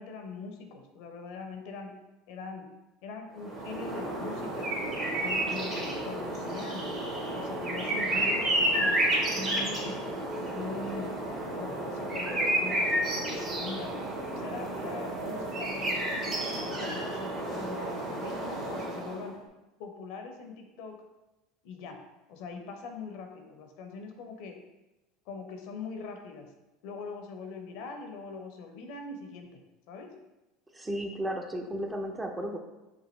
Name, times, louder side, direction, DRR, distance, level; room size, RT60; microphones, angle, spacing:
voice 1, 0.0-1.9 2.3-2.7 3.0-4.7 5.2-6.9 7.2-10.0 10.5-11.2 11.6-13.9 14.3-19.4 19.8-21.0 21.6-22.0 22.3-24.6 25.3-26.5 26.8-29.6 29.9-30.1, left 4 dB, 65° left, 4 dB, 0.6 m, -42 dB
sound 1, 3.4-19.3, right 1 dB, 40° right, 1.2 m, -31 dB
voice 2, 30.7-32.6, equal, 15° right, 4 dB, 0.6 m, -34 dB
5.2 x 2.5 x 3.2 m, 1.0 s
hypercardioid pair, 80°, 0 cm